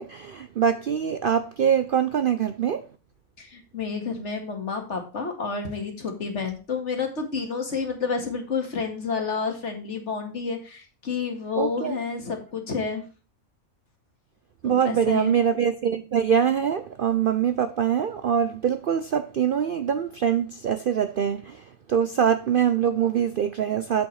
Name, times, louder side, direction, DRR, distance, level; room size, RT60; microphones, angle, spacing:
voice 1, 0.0-2.8 11.6-12.0 14.6-21.6 21.9-24.1, right 8 dB, 85° right, 0.4 m, -24 dB
voice 2, 3.4-13.0 14.6-15.4, left 5 dB, 50° left, 2.1 m, -30 dB
7.9 x 7.8 x 3.2 m
omnidirectional pair, 1.6 m